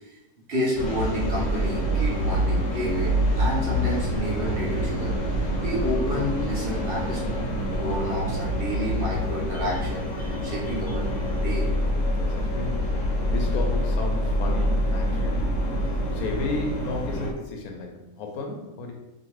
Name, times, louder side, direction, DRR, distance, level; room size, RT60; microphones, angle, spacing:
voice 1, 0.5-7.5 7.7-11.1 11.4-11.6, equal, 50° right, -5 dB, 0.8 m, -30 dB
sound 1, 0.7-17.3, equal, 65° left, 0.9 m, -26 dB
voice 2, 12.1-15.5 16.1-18.9, left 2 dB, 90° left, 2 dB, 1.1 m, -33 dB
2.9 x 2.5 x 3.0 m, 1.0 s
omnidirectional pair, 1.5 m